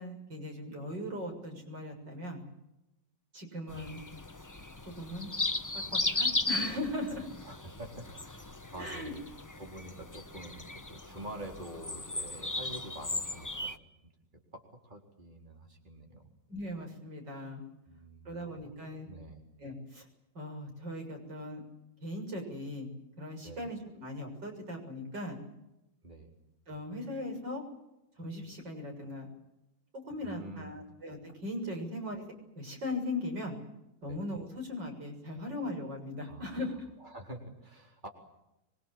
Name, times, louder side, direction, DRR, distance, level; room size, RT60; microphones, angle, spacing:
voice 1, 0.0-2.4 3.3-4.0 4.8-5.3 5.9-7.3 8.8-9.1 16.5-17.6 18.3-19.1 19.6-20.1 20.3-21.6 22.0-25.4 26.7-27.6 28.2-29.3 29.9-32.2 32.6-33.5 34.0-36.7, left 1 dB, 90° right, 3 dB, 7.6 m, -39 dB
sound 1, 3.7-13.8, left 2 dB, 15° left, 0.8 m, -36 dB
voice 2, 7.4-9.2 9.6-13.7 14.5-16.2 17.9-18.7 19.0-19.4 23.4-23.7 26.0-26.3 30.2-30.8 34.1-34.2 36.3-36.6 37.0-38.1, right 1 dB, 25° right, 2 dB, 4.3 m, -47 dB
26.5 x 23.5 x 7.6 m, 0.90 s
omnidirectional pair, 1.9 m